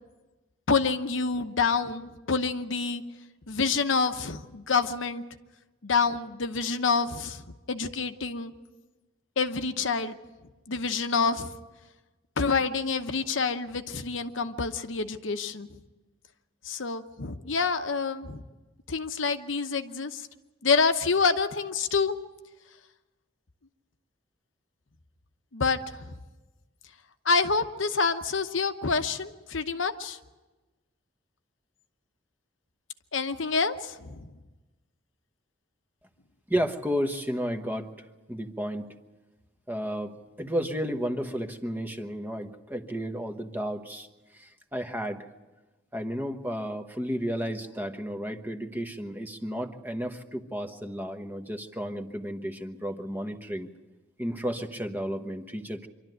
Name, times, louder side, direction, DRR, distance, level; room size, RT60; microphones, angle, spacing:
voice 1, 0.7-3.0 3.5-5.2 5.8-7.4 7.7-8.5 9.4-10.2 10.7-11.5 12.4-15.7 16.6-18.4 18.9-20.3 20.6-22.2 25.5-26.2 27.2-30.2 33.1-34.3, left 4 dB, 70° left, 8 dB, 0.9 m, -27 dB
voice 2, 36.5-37.9 38.3-38.9 39.7-44.1 44.3-45.3 45.9-53.7 54.2-55.9, equal, 10° right, 6 dB, 1.1 m, -32 dB
25.5 x 12.5 x 9.2 m, 1.2 s
head